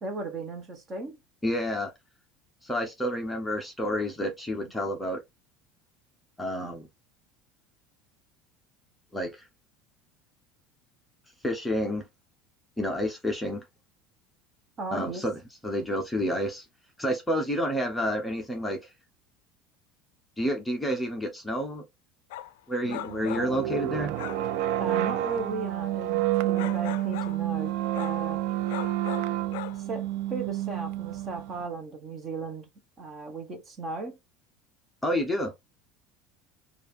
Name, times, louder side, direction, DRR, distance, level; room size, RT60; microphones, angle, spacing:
voice 1, 0.0-1.2 14.8-15.3 24.8-28.4 29.8-32.7 33.0-34.2, right 3 dB, 25° right, 0.8 m, -36 dB
voice 2, 1.4-1.9 2.6-5.2 6.4-6.9 9.1-9.4 11.4-12.0 12.8-13.6 14.9-16.7 17.0-18.8 20.4-21.8 22.7-24.1 35.0-35.5, equal, 5° left, 0.7 m, -29 dB
sound 1, 22.3-22.5 22.9-23.6 24.2-24.5 26.6-27.5 27.9-28.2 28.7-29.8, left 13 dB, 90° left, 0.4 m, -38 dB
sound 2, 22.8-31.6, right 13 dB, 65° right, 0.4 m, -29 dB
5.0 x 2.4 x 3.2 m
cardioid pair, 170°, 0 cm